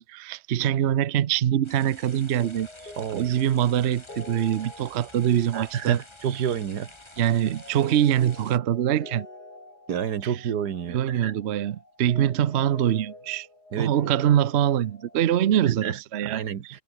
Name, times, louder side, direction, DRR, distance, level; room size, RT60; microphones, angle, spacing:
voice 1, 0.0-2.7 3.1-6.0 6.3-6.4 7.2-9.3 10.2-10.4 10.9-13.5 13.8-16.8, right 10 dB, 55° right, 0.8 m, -24 dB
sound 1, 1.6-8.6, left 1 dB, 15° left, 3.0 m, -49 dB
sound 2, 2.4-15.4, left 2 dB, 85° left, 8.6 m, -47 dB
voice 2, 5.5-6.9 9.9-11.3 13.7-13.9 15.8-16.0 16.2-16.8, right 8 dB, 85° right, 1.9 m, -29 dB
omnidirectional pair, 1.7 m